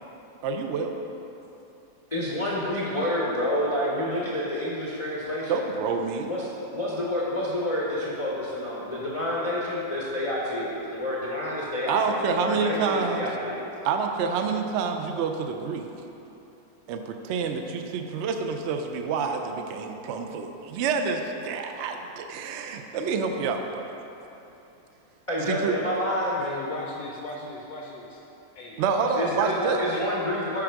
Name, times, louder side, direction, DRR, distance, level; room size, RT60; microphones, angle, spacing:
voice 1, 0.4-1.0 5.5-6.3 11.9-13.3 13.8-15.9 16.9-23.8 25.5-25.7 28.8-29.8, right 5 dB, 85° right, 5 dB, 0.6 m, -28 dB
voice 2, 2.1-5.6 6.2-13.7 25.3-26.4 29.2-30.6, left 1 dB, 40° left, -6 dB, 0.5 m, -28 dB
voice 3, 26.4-28.2 28.5-30.1, left 2 dB, 70° left, -1 dB, 0.9 m, -38 dB
7.1 x 5.0 x 4.5 m, 3.0 s
omnidirectional pair, 1.8 m